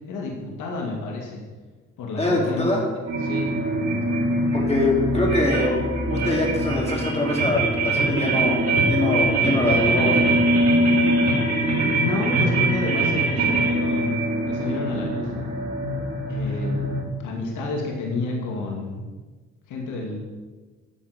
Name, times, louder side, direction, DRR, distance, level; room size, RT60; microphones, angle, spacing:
voice 1, 0.1-1.4 2.0-2.7 3.2-3.5 11.3-14.2 14.5-15.3 16.3-16.8 17.2-19.0 19.7-20.2, left 3 dB, 85° left, -1 dB, 2.4 m, -30 dB
voice 2, 2.2-2.8 4.5-5.8 6.1-8.6 8.9-10.2, left 2 dB, 20° left, -2 dB, 3.5 m, -23 dB
sound 1, 3.1-17.0, right 2 dB, 55° right, 4.0 m, -22 dB
13.0 x 8.1 x 5.3 m, 1.3 s
cardioid pair, 90°, 30 cm